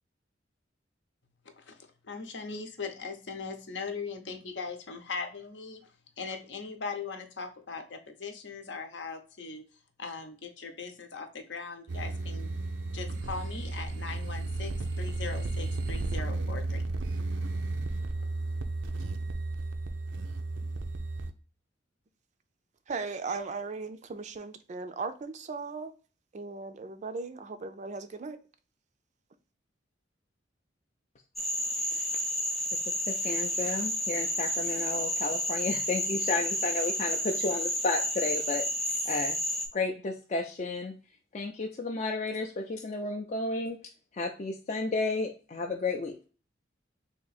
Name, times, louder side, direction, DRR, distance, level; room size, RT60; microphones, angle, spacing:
voice 1, 1.4-5.9 6.2-9.6 10.0-12.5 12.9-16.8, left 4 dB, 70° left, 0.7 m, -40 dB
sound 1, 11.9-21.3, right 2 dB, 90° right, 0.5 m, -33 dB
voice 2, 22.9-25.9 26.3-28.4, right 4 dB, 40° right, 0.4 m, -37 dB
Frog, 31.4-39.7, equal, ahead, 0.6 m, -31 dB
voice 3, 33.1-38.7 39.1-39.4 39.7-40.9 41.3-43.8 44.1-46.1, left 3 dB, 40° left, 0.4 m, -32 dB
3.5 x 2.8 x 4.0 m
head